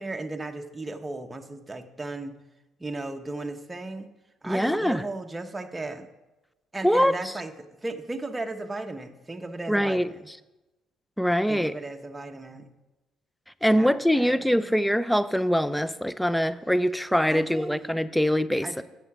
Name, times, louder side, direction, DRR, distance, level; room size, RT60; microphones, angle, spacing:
voice 1, 0.0-2.3 2.8-4.1 4.4-6.1 6.7-7.5 7.8-10.3 11.5-12.7 13.7-14.7 17.3-17.8 18.6-18.8, right 2 dB, 20° right, 6 dB, 0.9 m, -36 dB
voice 2, 4.4-5.0 6.8-7.1 9.7-10.1 11.2-11.7 13.6-18.8, equal, ahead, 15 dB, 0.5 m, -23 dB
8.0 x 7.3 x 6.0 m, 1.0 s
supercardioid pair, 80°, 0 cm